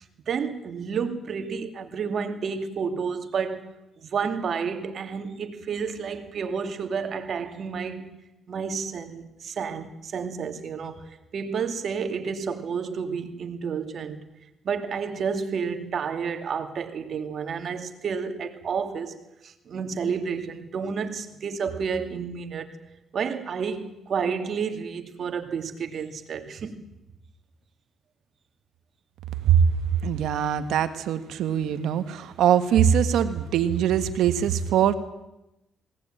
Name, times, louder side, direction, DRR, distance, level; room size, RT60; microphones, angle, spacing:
voice 1, 0.3-3.6 4.0-8.1 8.5-14.2 14.6-19.2 19.4-22.7 23.1-26.8, right 6 dB, 55° right, 2.5 m, -30 dB
voice 2, 30.0-34.9, right 9 dB, 80° right, 1.7 m, -22 dB
21.5 x 18.5 x 9.1 m
cardioid pair, 90°, 0 cm